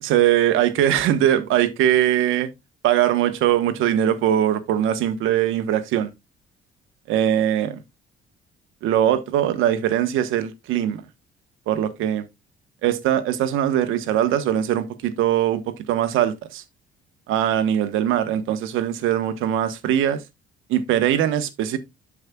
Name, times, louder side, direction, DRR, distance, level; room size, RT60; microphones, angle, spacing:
voice 1, 0.0-2.5 2.8-6.1 7.1-7.7 8.8-11.0 11.7-12.2 12.8-16.6 17.3-20.2 20.7-21.8, right 11 dB, 90° right, 1.1 m, -21 dB
13.5 x 4.9 x 2.3 m
cardioid pair, 125°, 20 cm